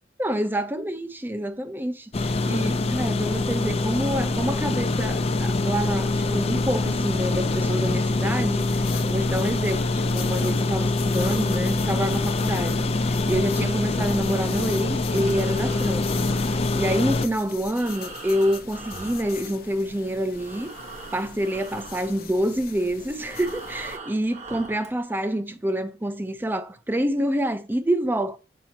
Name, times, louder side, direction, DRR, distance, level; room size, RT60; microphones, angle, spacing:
voice 1, 0.2-16.3 16.7-20.7 21.1-28.4, equal, 10° right, 0.6 m, -27 dB
sound 1, 2.1-17.3, left 2 dB, 35° left, 0.5 m, -24 dB
sound 2, 8.6-24.0, left 6 dB, 60° left, 0.9 m, -41 dB
Breathing, 15.1-20.0 20.3-25.0, right 3 dB, 40° right, 1.2 m, -42 dB
7.4 x 5.4 x 2.8 m
head